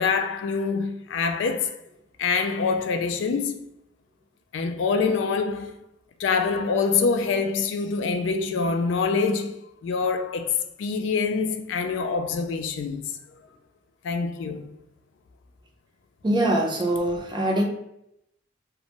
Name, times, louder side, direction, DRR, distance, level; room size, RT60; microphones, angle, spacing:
voice 1, 0.0-1.8 2.2-3.6 4.5-5.7 6.2-9.5 9.8-13.0 14.0-14.7, left 5 dB, 70° left, 0.3 m, -25 dB
voice 2, 16.2-17.7, right 1 dB, 25° right, 0.5 m, -23 dB
2.5 x 2.1 x 2.9 m
head